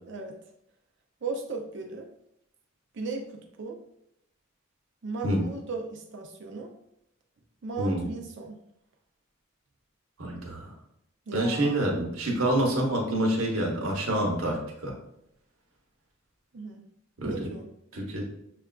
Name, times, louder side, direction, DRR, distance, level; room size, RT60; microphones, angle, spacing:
voice 1, 0.0-0.4 1.2-2.1 2.9-3.8 5.0-6.7 7.6-8.6 11.3-11.9 16.5-16.8 17.2-17.7, right 3 dB, 60° right, 2 dB, 0.5 m, -36 dB
voice 2, 7.8-8.1 10.2-10.7 11.3-14.9 17.2-17.5 17.9-18.2, right 1 dB, 85° right, -1 dB, 0.9 m, -27 dB
6.6 x 2.4 x 2.2 m, 0.78 s
head